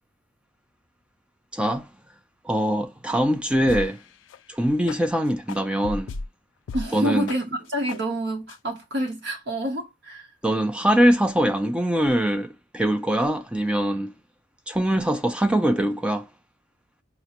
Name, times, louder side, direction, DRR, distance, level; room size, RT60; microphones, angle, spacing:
voice 1, 1.5-1.9 2.4-4.0 4.5-6.1 6.9-7.3 10.4-14.1 14.7-16.3, right 1 dB, 5° right, 0.3 m, -22 dB
sound 1, 3.5-4.0 4.3-4.4 4.8-5.0 5.5-6.3 6.7-6.9 7.2-7.4 7.9-8.0 8.5-8.6, left 3 dB, 85° left, 0.3 m, -33 dB
voice 2, 6.7-10.3, right 1 dB, 65° right, 0.9 m, -28 dB
5.0 x 2.0 x 2.9 m
head